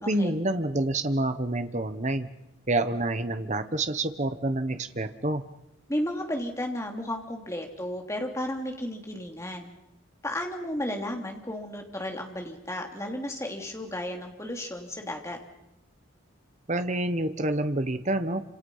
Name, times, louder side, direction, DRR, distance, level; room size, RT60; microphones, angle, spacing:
voice 1, 0.1-2.3 2.7-5.4 16.7-18.4, right 2 dB, 35° right, 9 dB, 1.2 m, -27 dB
voice 2, 5.9-9.7 10.2-15.4, left 1 dB, 15° left, 2 dB, 3.2 m, -33 dB
28.5 x 27.0 x 5.7 m, 0.90 s
head